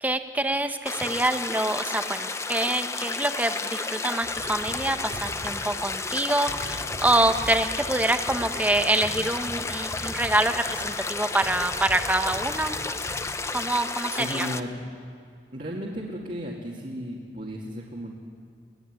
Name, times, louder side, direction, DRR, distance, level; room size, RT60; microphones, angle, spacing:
voice 1, 0.0-12.8 13.5-14.5, right 1 dB, 10° right, 7 dB, 1.0 m, -26 dB
sound 1, 0.9-14.6, left 3 dB, 15° left, 0.6 m, -32 dB
sound 2, 4.2-13.8, equal, 80° right, 2.8 m, -42 dB
voice 2, 14.2-14.8 15.5-18.1, equal, 45° right, -3 dB, 2.4 m, -34 dB
23.5 x 17.0 x 9.7 m, 2.3 s
head